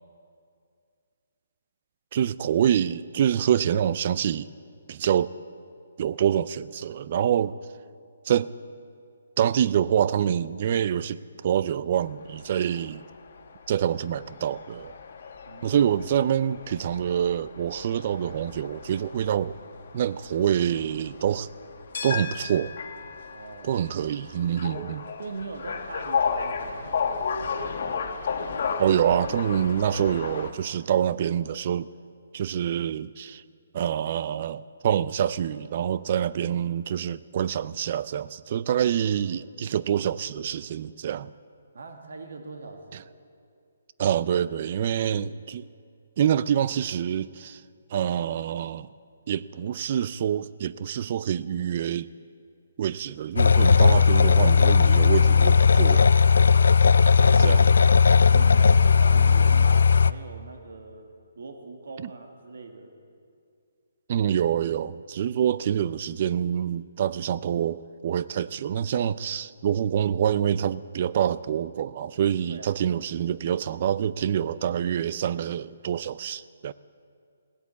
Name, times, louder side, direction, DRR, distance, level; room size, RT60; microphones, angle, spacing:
voice 1, 2.1-4.5 4.9-5.3 6.0-7.6 8.3-8.5 9.4-13.0 13.7-14.9 15.6-19.6 19.9-21.5 22.0-22.7 23.6-25.1 28.8-31.9 32.3-33.4 33.7-41.3 44.0-45.7 46.2-47.6 47.9-48.9 49.3-52.1 52.8-56.1 57.4-57.7 62.0-62.1 64.1-76.7, right 9 dB, 40° right, 18 dB, 0.4 m, -26 dB
sound 1, 12.2-30.5, left 6 dB, 60° left, 1.3 m, -34 dB
voice 2, 15.5-15.9 23.3-23.8 25.2-28.0 41.7-43.1 58.3-61.1 61.3-62.9 72.5-72.8, right 3 dB, 75° right, 4 dB, 1.8 m, -42 dB
sound 2, 53.4-60.1, left 5 dB, 85° left, 0.4 m, -17 dB
17.5 x 8.4 x 8.3 m, 2.3 s
hypercardioid pair, 165°, 0 cm